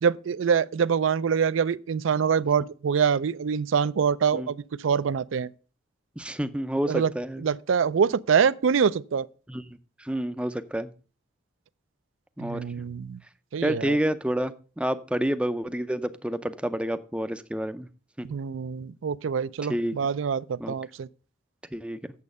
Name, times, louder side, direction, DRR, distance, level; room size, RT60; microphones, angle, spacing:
voice 1, 0.0-5.5 6.9-7.1 7.4-9.3 12.4-13.2 13.5-14.0 18.2-21.1, right 6 dB, 75° right, 0.4 m, -25 dB
voice 2, 6.2-7.4 9.5-10.9 12.4-12.6 13.6-17.9 18.2-18.3 19.7-19.9 20.6-20.7 21.7-22.0, equal, 5° right, 0.4 m, -29 dB
8.5 x 7.1 x 5.3 m
head